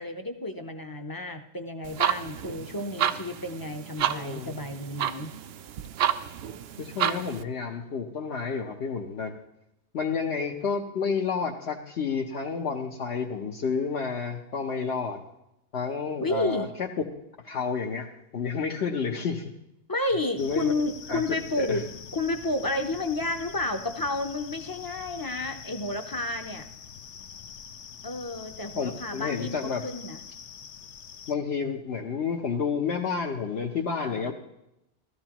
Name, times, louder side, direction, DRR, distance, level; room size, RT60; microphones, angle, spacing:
voice 1, 0.0-5.3 16.2-16.7 19.9-21.9 22.1-26.7 28.0-30.2 34.0-34.3, left 2 dB, 25° left, 6 dB, 0.6 m, -31 dB
sound 1, 1.8-7.4, right 10 dB, 70° right, 0.8 m, -30 dB
voice 2, 4.1-4.5 6.8-9.3 9.9-15.2 15.7-16.9 17.4-18.1 18.3-19.5 20.4-20.7 21.1-21.2 21.7-21.8 28.8-29.9 31.3-34.3, left 5 dB, 70° left, -1 dB, 1.2 m, -30 dB
sound 2, 20.4-31.3, left 7 dB, 90° left, 1.0 m, -44 dB
16.0 x 13.0 x 3.0 m, 0.85 s
omnidirectional pair, 1.1 m